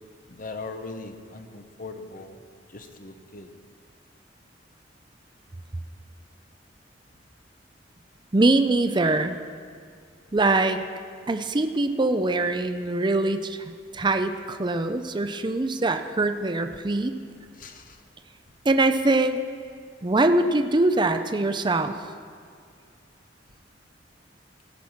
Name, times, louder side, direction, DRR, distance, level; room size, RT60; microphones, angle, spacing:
voice 1, 0.3-2.4 2.7-3.5 17.6-17.8, left 3 dB, 45° left, 6 dB, 0.9 m, -39 dB
voice 2, 8.3-9.4 10.3-10.8 11.3-13.6 13.9-17.1 18.7-19.4 20.0-22.0, right 2 dB, 25° right, 8 dB, 0.5 m, -23 dB
16.5 x 6.1 x 7.3 m, 2.2 s
head